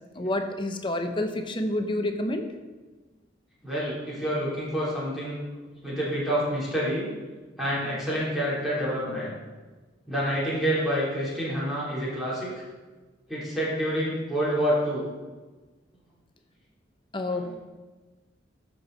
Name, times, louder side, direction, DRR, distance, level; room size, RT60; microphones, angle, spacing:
voice 1, 0.1-2.5 17.1-17.6, left 1 dB, 25° left, 6 dB, 0.7 m, -28 dB
voice 2, 3.6-5.4 5.8-7.1 7.6-9.3 10.1-12.5 13.3-15.1 17.3-17.5, equal, ahead, -9 dB, 3.2 m, -28 dB
14.0 x 6.2 x 4.0 m, 1.3 s
head